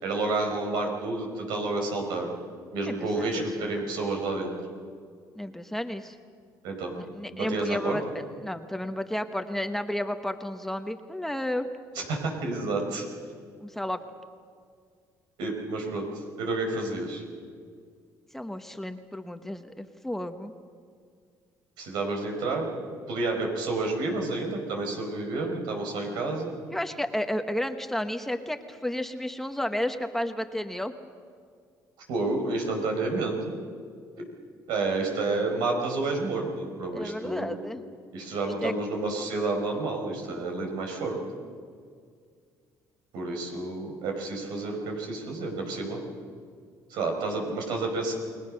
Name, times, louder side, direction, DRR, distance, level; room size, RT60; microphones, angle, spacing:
voice 1, 0.0-2.3 2.7-4.5 6.6-6.9 7.3-8.0 11.9-13.0 15.4-16.1 16.4-17.2 21.8-22.8 23.1-26.5 32.1-33.5 34.7-37.5 38.1-41.2 43.1-46.0 46.9-48.1, right 3 dB, 85° right, 2 dB, 5.0 m, -30 dB
voice 2, 2.9-3.7 5.4-6.2 7.0-8.0 8.4-11.7 13.6-14.0 18.3-20.5 26.7-30.9 36.9-37.8 38.6-38.7, left 1 dB, 5° left, 7 dB, 1.2 m, -32 dB
29.5 x 20.0 x 6.5 m, 2.1 s
cardioid pair, 105°, 7 cm